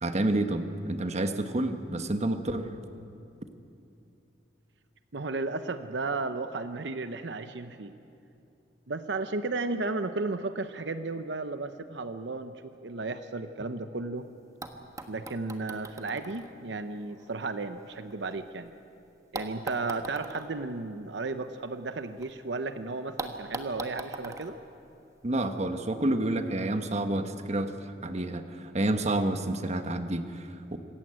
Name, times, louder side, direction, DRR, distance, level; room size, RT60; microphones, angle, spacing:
voice 1, 0.0-2.7 25.2-27.8 28.0-30.8, right 1 dB, 40° right, 8 dB, 1.2 m, -29 dB
voice 2, 5.1-7.9 8.9-14.3 15.1-18.8 19.3-24.6, right 3 dB, 70° right, 9 dB, 0.8 m, -34 dB
sound 1, 14.2-14.3 14.6-18.7 19.3-22.3 22.6-22.7 23.2-25.6 26.6-26.7, right 2 dB, 20° right, 1.3 m, -42 dB
25.5 x 14.0 x 8.9 m, 2.7 s
head